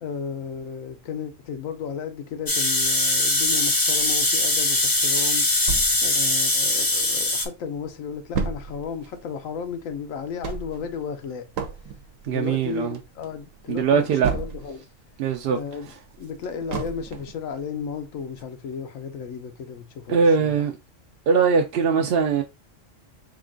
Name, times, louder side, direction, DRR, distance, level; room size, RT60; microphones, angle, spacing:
voice 1, 0.0-5.6 6.0-11.5 12.3-14.8 15.5-15.9 16.2-20.6, left 6 dB, 90° left, 1.1 m, -34 dB
sound 1, 2.5-7.4, left 2 dB, 25° left, 0.5 m, -21 dB
sound 2, 5.7-7.2 7.6-7.7 7.9-14.9 15.3-17.4 17.9-18.0 18.4-18.5, right 6 dB, 80° right, 1.1 m, -33 dB
voice 2, 12.2-13.0 13.7-14.3 15.2-15.6 20.1-20.7 21.3-22.4, right 5 dB, 65° right, 0.6 m, -21 dB
3.6 x 2.4 x 3.6 m
omnidirectional pair, 1.4 m